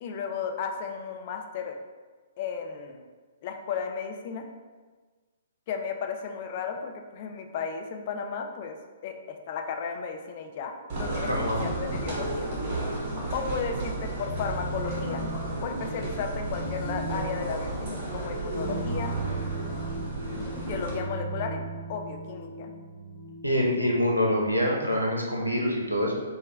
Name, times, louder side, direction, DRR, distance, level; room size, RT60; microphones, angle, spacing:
voice 1, 0.0-1.8 2.4-3.0 3.4-4.4 5.7-8.8 9.0-12.5 13.3-15.2 15.6-19.1 20.6-21.6 21.9-22.7, left 6 dB, 40° left, 4 dB, 0.3 m, -34 dB
sound 1, 10.9-20.9, right 2 dB, 35° right, 0.8 m, -33 dB
voice 2, 11.3-11.7 23.4-26.2, equal, 90° right, -1 dB, 0.5 m, -25 dB
sound 2, 14.2-24.9, right 1 dB, 65° left, 1.0 m, -37 dB
4.8 x 2.1 x 2.3 m, 1.4 s
figure-of-eight pair, 120°, 0 cm